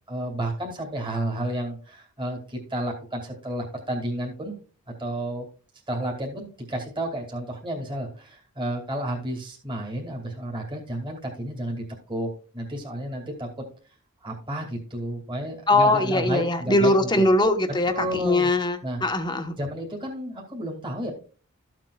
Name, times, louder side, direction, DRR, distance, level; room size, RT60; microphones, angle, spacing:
voice 1, 0.1-4.6 4.9-5.4 5.9-13.5 14.2-16.9 17.9-18.5 18.8-19.0 19.6-21.1, right 1 dB, 20° right, -1 dB, 2.4 m, -31 dB
voice 2, 15.7-19.5, left 1 dB, 20° left, 6 dB, 1.1 m, -21 dB
14.0 x 7.5 x 2.4 m, 0.38 s
head